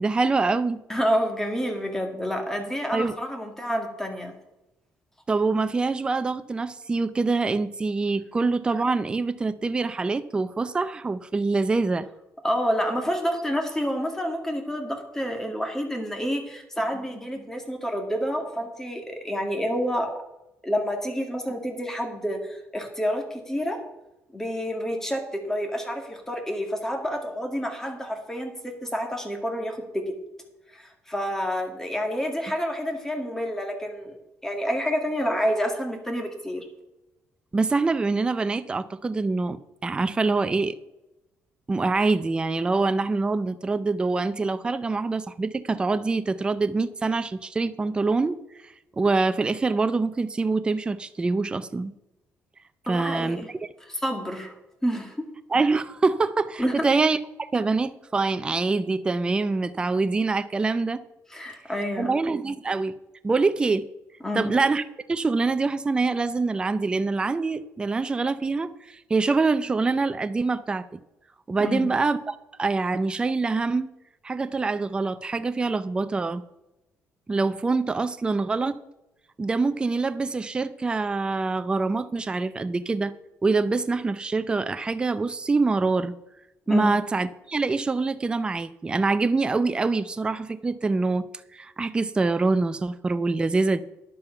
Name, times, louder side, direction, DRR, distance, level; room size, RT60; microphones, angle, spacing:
voice 1, 0.0-0.8 2.9-3.2 5.3-12.1 37.5-40.8 41.7-48.4 49.0-51.9 52.9-53.4 55.5-61.0 62.0-62.9 63.2-63.8 64.3-70.9 71.5-73.9 74.2-76.4 77.3-78.8 79.4-83.1 83.4-86.1 86.7-91.2 91.5-93.8, right 3 dB, 15° right, 12 dB, 0.5 m, -25 dB
voice 2, 0.9-4.3 12.4-20.1 20.6-23.8 24.3-30.0 30.7-34.2 34.4-36.7 52.9-53.5 53.8-54.5 54.8-55.2 56.6-56.9 61.3-62.1 64.2-64.5 71.6-71.9 86.7-86.9, equal, 10° left, 4 dB, 1.9 m, -28 dB
10.5 x 7.6 x 5.7 m, 0.93 s
cardioid pair, 135°, 5 cm